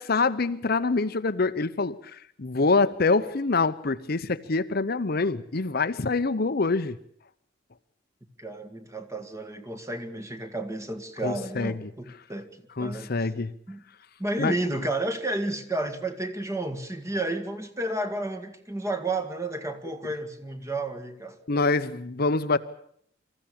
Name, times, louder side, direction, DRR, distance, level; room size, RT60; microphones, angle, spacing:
voice 1, 0.0-2.0 2.4-7.0 11.2-11.7 12.8-13.5 14.4-14.5 21.5-22.6, left 3 dB, 55° left, 12 dB, 0.8 m, -25 dB
voice 2, 8.4-12.5 12.8-13.3 13.7-13.8 14.2-21.4, right 2 dB, 15° right, 6 dB, 1.9 m, -31 dB
25.5 x 14.5 x 8.6 m, 0.68 s
head